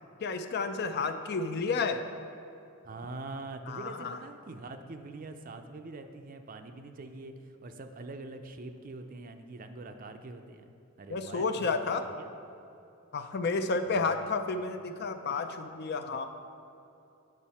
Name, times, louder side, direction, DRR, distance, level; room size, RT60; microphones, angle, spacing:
voice 1, 0.2-2.0 3.7-4.2 11.1-12.0 13.1-16.3, left 4 dB, 50° left, 8 dB, 0.4 m, -31 dB
voice 2, 2.8-10.7 11.0-11.7 12.0-12.3 13.9-14.3, right 2 dB, 40° right, 7 dB, 0.4 m, -44 dB
8.8 x 6.3 x 4.2 m, 2.7 s
head